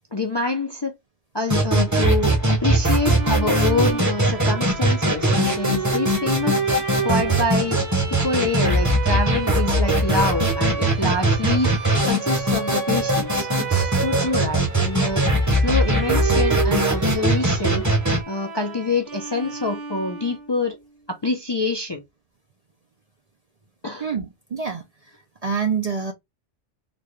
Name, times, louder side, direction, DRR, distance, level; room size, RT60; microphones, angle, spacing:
voice 1, 0.1-0.9 1.3-6.6 7.0-7.8 8.2-11.7 12.0-15.2 15.5-17.8 18.3-20.8 21.1-22.0 23.8-24.1, left 3 dB, 35° left, 0.4 m, -26 dB
sound 1, 1.5-18.2, right 1 dB, 15° right, 0.8 m, -21 dB
Bowed string instrument, 2.8-20.6, right 6 dB, 85° right, 1.5 m, -31 dB
voice 2, 24.0-25.2 25.4-26.1, right 6 dB, 45° right, 0.5 m, -27 dB
4.0 x 2.2 x 3.1 m
omnidirectional pair, 1.2 m